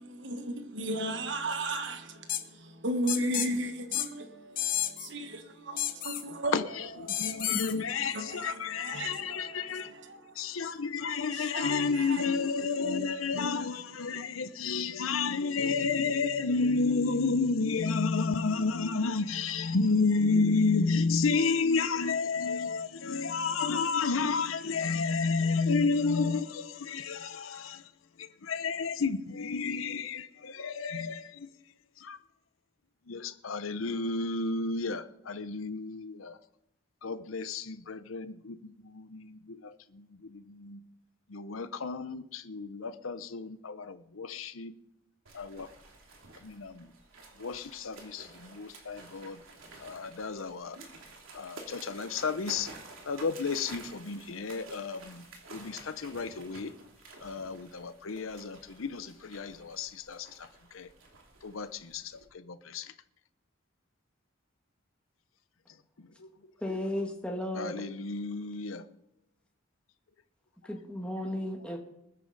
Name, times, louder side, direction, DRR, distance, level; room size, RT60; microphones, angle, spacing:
voice 1, 0.0-6.5 7.1-7.6 8.1-9.9 10.3-10.4 11.5-11.7 12.0-12.1, right 1 dB, 60° right, 1.4 m, -35 dB
sound 1, 2.3-2.4 3.1-3.5 3.9-4.1 4.6-5.1 5.8-6.2 7.1-7.7, left 11 dB, 45° left, 0.9 m, -31 dB
voice 2, 6.4-9.9 10.3-32.2 33.1-36.4 37.0-40.8 41.3-44.7 45.3-45.7 46.3-46.9 47.4-49.4 49.8-50.8 51.3-52.7 53.0-56.8 57.2-60.9 61.4-62.9 65.7-67.0 67.5-68.9 70.6-70.8 71.1-71.4, left 4 dB, 90° left, 0.8 m, -31 dB
sound 2, 45.3-62.3, right 3 dB, 85° right, 2.8 m, -51 dB
voice 3, 66.6-67.8 70.7-71.8, left 1 dB, 5° left, 1.5 m, -34 dB
21.0 x 9.9 x 4.0 m
head